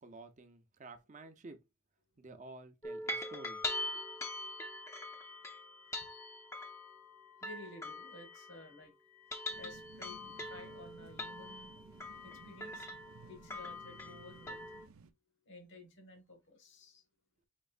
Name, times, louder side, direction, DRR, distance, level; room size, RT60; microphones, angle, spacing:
voice 1, 0.0-1.6 2.2-3.6 3.9-4.0, right 2 dB, 35° right, 0.6 m, -52 dB
sound 1, 2.8-8.8 9.1-14.9, left 2 dB, 15° left, 0.6 m, -43 dB
voice 2, 7.4-8.9 9.6-11.8 12.2-12.9 13.3-14.8 15.5-17.0, left 2 dB, 60° left, 1.4 m, -53 dB
sound 2, 9.5-15.1, right 4 dB, 90° right, 0.5 m, -57 dB
5.3 x 3.1 x 2.4 m
head